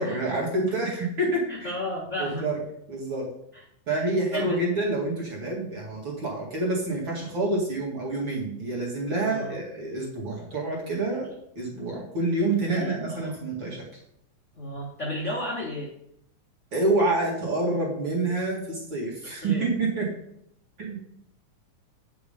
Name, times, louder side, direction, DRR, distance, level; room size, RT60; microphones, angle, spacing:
voice 1, 0.0-1.7 2.2-2.6 2.9-3.3 3.9-11.3 11.6-13.8 16.7-20.1 20.8-21.0, right 2 dB, 40° right, -2 dB, 2.3 m, -27 dB
voice 2, 1.5-2.4 4.3-4.6 9.2-9.6 12.8-13.3 14.5-15.9 19.2-19.6, left 1 dB, 90° left, -4 dB, 0.6 m, -33 dB
8.5 x 5.5 x 5.0 m, 0.73 s
omnidirectional pair, 4.0 m